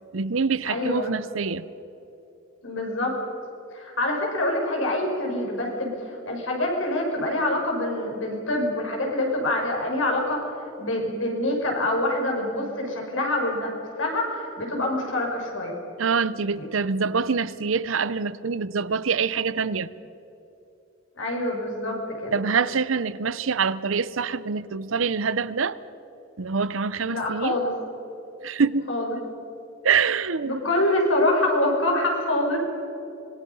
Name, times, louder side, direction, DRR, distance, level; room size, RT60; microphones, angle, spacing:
voice 1, 0.1-1.7 16.0-19.9 22.3-25.8 26.4-27.6 28.4-28.9 29.8-30.6, right 5 dB, 85° right, 0.7 m, -25 dB
voice 2, 0.7-1.1 2.6-3.2 3.7-10.5 10.8-13.7 14.0-15.7 16.6-16.7 21.2-22.4 27.1-27.7 28.9-29.1 30.4-32.6, left 1 dB, 85° left, 5.8 m, -25 dB
25.5 x 21.5 x 5.6 m
head